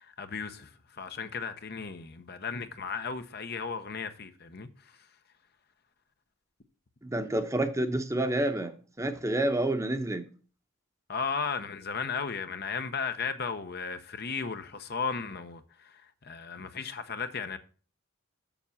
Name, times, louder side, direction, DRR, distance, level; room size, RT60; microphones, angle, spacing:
voice 1, 0.0-5.1 11.1-17.6, left 5 dB, 50° left, 0.8 m, -35 dB
voice 2, 7.0-10.2, right 1 dB, 15° right, 0.9 m, -29 dB
7.2 x 6.8 x 7.1 m
head